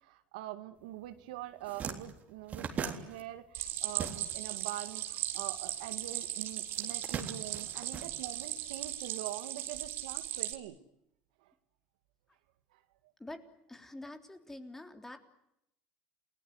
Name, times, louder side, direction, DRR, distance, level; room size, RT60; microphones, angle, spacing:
voice 1, 0.0-10.8 11.4-11.5 12.7-12.8, right 14 dB, 90° right, 9 dB, 2.1 m, -44 dB
sound 1, 1.0-1.2 1.5-4.6 4.9-6.1 6.7-8.7, right 6 dB, 40° right, 3.7 m, -41 dB
Stream, 3.5-10.5, right 12 dB, 60° right, 3.3 m, -38 dB
voice 2, 13.7-15.2, left 1 dB, 10° left, 6 dB, 3.6 m, -46 dB
30.0 x 19.5 x 9.7 m, 0.80 s
supercardioid pair, 110°, 4 cm